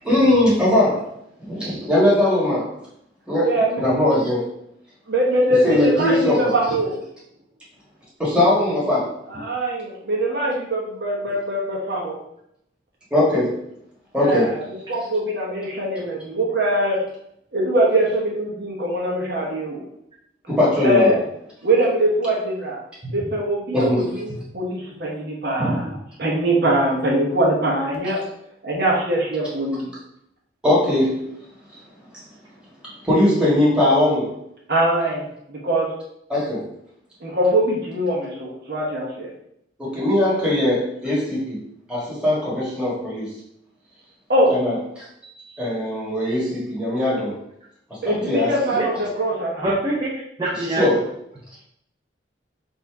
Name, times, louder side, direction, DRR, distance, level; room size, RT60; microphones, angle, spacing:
voice 1, 0.0-1.1 1.4-2.7 3.3-4.4 5.6-6.5 8.2-9.1 13.1-13.5 14.1-14.5 20.5-21.1 23.7-24.0 30.6-31.3 32.8-34.3 36.3-36.6 39.8-41.6 41.9-43.3 44.5-45.1 45.6-47.3 47.9-48.5 50.5-51.0, left 1 dB, 5° right, -7 dB, 1.6 m, -20 dB
voice 2, 3.4-3.8 5.1-7.0 9.3-12.2 14.2-17.0 17.5-19.8 20.8-21.2 21.6-22.8 23.1-25.8 26.2-28.2 28.6-29.9 34.7-35.9 37.2-39.3 44.3-44.5 48.0-49.7, right 1 dB, 55° right, -3 dB, 1.1 m, -22 dB
voice 3, 49.6-51.0, right 1 dB, 25° right, -5 dB, 0.7 m, -25 dB
4.2 x 2.7 x 4.6 m, 0.75 s
head